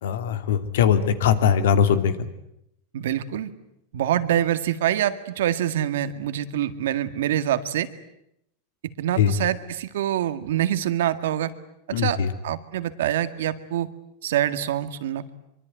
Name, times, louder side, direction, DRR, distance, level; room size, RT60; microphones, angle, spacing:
voice 1, 0.0-2.1 9.2-9.3 11.9-12.3, left 8 dB, 85° left, 10 dB, 2.6 m, -20 dB
voice 2, 2.9-3.5 3.9-7.9 9.0-11.5 12.0-12.2 12.4-13.9 14.2-15.3, right 11 dB, 85° right, 11 dB, 1.9 m, -25 dB
24.5 x 24.0 x 9.3 m, 0.79 s
supercardioid pair, 145°, 0 cm